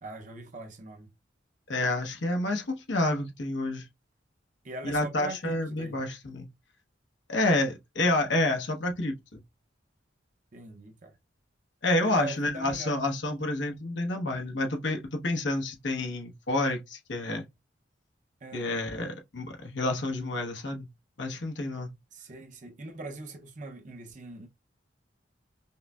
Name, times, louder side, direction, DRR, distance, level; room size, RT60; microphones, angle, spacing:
voice 1, 0.0-1.1 4.6-6.0 10.5-11.1 11.9-13.0 18.4-18.8 22.1-24.5, right 2 dB, 40° right, 0.6 m, -41 dB
voice 2, 1.7-3.8 4.8-6.5 7.3-9.4 11.8-17.4 18.5-20.9 21.2-21.9, left 2 dB, 75° left, 1.0 m, -29 dB
5.4 x 2.1 x 2.3 m
head